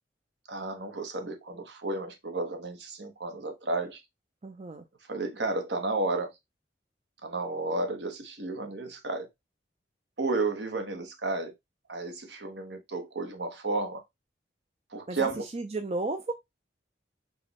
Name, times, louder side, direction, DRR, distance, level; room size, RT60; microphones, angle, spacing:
voice 1, 0.5-4.0 5.1-6.3 7.2-9.3 10.2-11.5 11.9-14.0 14.9-15.4, right 3 dB, 70° right, 1.1 m, -32 dB
voice 2, 4.4-4.8 15.1-16.3, right 2 dB, 35° right, 0.4 m, -33 dB
5.1 x 2.4 x 4.0 m
head